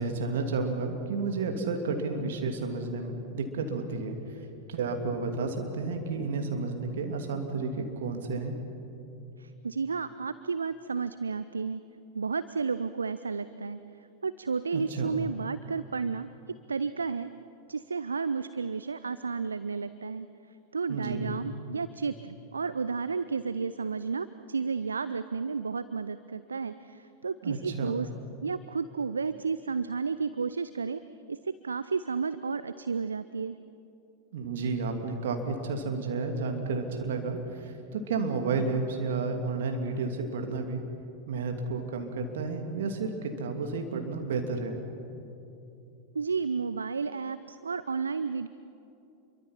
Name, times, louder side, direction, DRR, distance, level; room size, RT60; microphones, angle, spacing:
voice 1, 0.0-4.2 4.7-8.6 14.7-15.2 20.9-21.3 27.4-28.0 34.3-40.8 41.3-44.8, right 4 dB, 60° right, 4 dB, 2.7 m, -31 dB
voice 2, 9.4-11.8 12.1-13.8 14.2-16.3 16.7-17.3 17.7-20.3 20.7-28.1 28.4-31.0 31.3-33.6 46.1-48.5, right 5 dB, 75° right, 13 dB, 0.5 m, -32 dB
28.0 x 23.5 x 5.8 m, 2.8 s
figure-of-eight pair, 90°, 0 cm